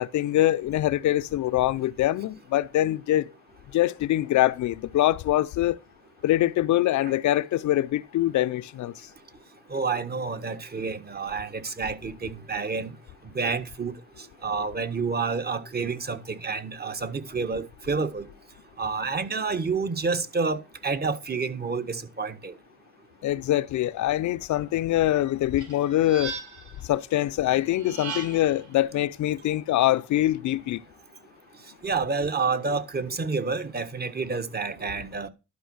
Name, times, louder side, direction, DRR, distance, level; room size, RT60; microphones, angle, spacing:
voice 1, 0.0-3.3 3.7-5.8 6.2-8.9 23.2-26.3 26.9-30.8, left 14 dB, 70° left, 0.6 m, -24 dB
voice 2, 9.7-12.9 13.3-13.9 14.4-18.3 18.8-22.5 31.8-35.3, right 4 dB, 30° right, 1.4 m, -29 dB
sound 1, 25.6-26.8 27.7-28.6, right 5 dB, 80° right, 3.4 m, -37 dB
11.5 x 5.3 x 6.3 m
cardioid pair, 90°, 30 cm